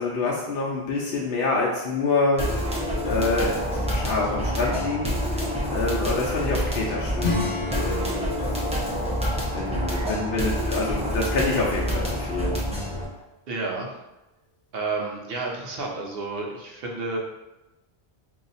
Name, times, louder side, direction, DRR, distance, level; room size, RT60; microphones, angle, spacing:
voice 1, 0.0-7.4 7.7-8.3 9.5-12.6, left 3 dB, 65° left, -4 dB, 0.7 m, -27 dB
sound 1, 2.4-13.1, equal, 10° right, 0.6 m, -27 dB
Acoustic guitar / Strum, 7.2-11.5, left 3 dB, 85° left, 1.1 m, -34 dB
voice 2, 13.5-13.9 14.7-17.2, right 3 dB, 65° right, 0 dB, 0.9 m, -30 dB
2.7 x 2.4 x 3.9 m, 0.99 s
omnidirectional pair, 1.1 m